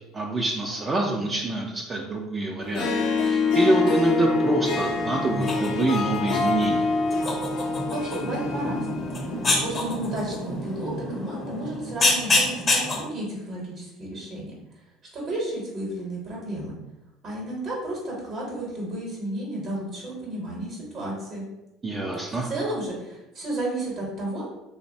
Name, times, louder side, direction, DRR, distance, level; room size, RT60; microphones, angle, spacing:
voice 1, 0.1-2.9 3.2-6.9 21.8-22.5, right 2 dB, 25° right, 0 dB, 0.3 m, -26 dB
Harp, 2.6-10.0, left 3 dB, 80° left, 0.5 m, -26 dB
sound 1, 4.7-13.0, left 2 dB, 30° left, 0.6 m, -28 dB
voice 2, 7.9-9.1 9.6-14.5 15.1-16.8 17.2-21.4 22.4-24.4, right 1 dB, 50° right, -3 dB, 0.8 m, -32 dB
2.5 x 2.0 x 2.6 m, 0.97 s
supercardioid pair, 100°, 0 cm